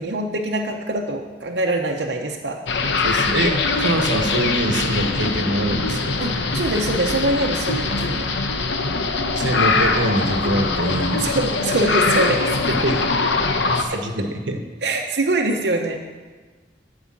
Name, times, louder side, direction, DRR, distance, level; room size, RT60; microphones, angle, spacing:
voice 1, 0.0-2.6 6.2-8.4 11.2-12.6 13.9-14.1 14.8-16.0, right 2 dB, 65° right, 1 dB, 0.8 m, -24 dB
sound 1, 2.7-13.8, left 3 dB, 75° left, 0.8 m, -22 dB
voice 2, 3.0-6.2 9.4-11.3 12.7-13.1 13.8-14.6, right 1 dB, 90° right, 6 dB, 1.0 m, -24 dB
12.0 x 4.9 x 7.4 m, 1.3 s
head